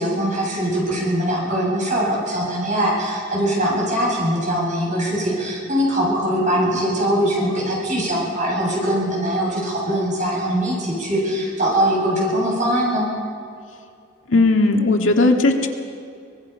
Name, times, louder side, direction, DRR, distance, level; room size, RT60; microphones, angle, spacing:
voice 1, 0.0-13.1, equal, 40° right, -3 dB, 7.5 m, -22 dB
voice 2, 14.3-15.7, left 2 dB, 80° left, 3 dB, 1.8 m, -16 dB
25.0 x 20.0 x 5.8 m, 2.4 s
head